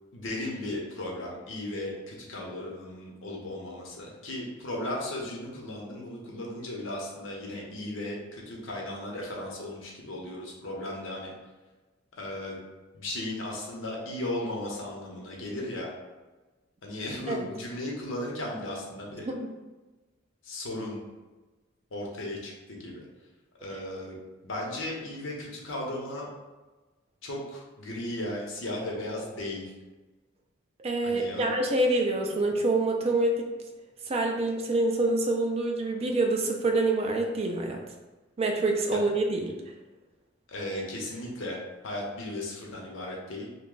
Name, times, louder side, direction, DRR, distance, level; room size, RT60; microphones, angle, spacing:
voice 1, 0.1-11.3 12.2-12.6 12.9-15.9 16.8-19.3 20.4-21.0 21.9-23.1 23.6-24.2 24.4-26.3 27.2-29.7 31.0-31.4 38.9-39.0 40.5-43.5, left 1 dB, 70° left, -1 dB, 0.8 m, -36 dB
voice 2, 30.8-33.5 34.1-37.8 38.4-39.5, right 2 dB, 30° right, 2 dB, 0.4 m, -26 dB
2.8 x 2.2 x 3.7 m, 1.2 s
head